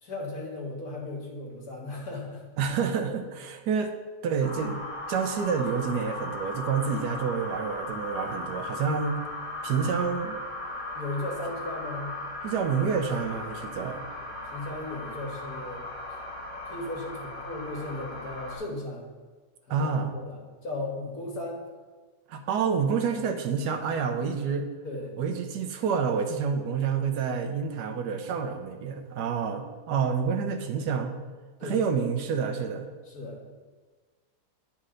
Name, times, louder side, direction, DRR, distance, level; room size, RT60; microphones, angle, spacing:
voice 1, 0.0-2.4 10.7-12.1 14.1-15.9 16.6-19.1 19.7-21.6 24.8-25.2 31.6-32.1 33.0-33.4, left 2 dB, 65° left, -3 dB, 2.0 m, -36 dB
voice 2, 2.6-3.9 4.2-4.8 5.1-9.2 9.6-10.4 12.4-14.0 19.7-20.1 22.3-24.7 25.2-31.1 31.6-32.9, right 6 dB, 85° right, 6 dB, 1.3 m, -28 dB
sound 1, 4.4-18.6, left 2 dB, 25° right, 1.9 m, -37 dB
9.6 x 4.4 x 3.8 m, 1.4 s
omnidirectional pair, 1.7 m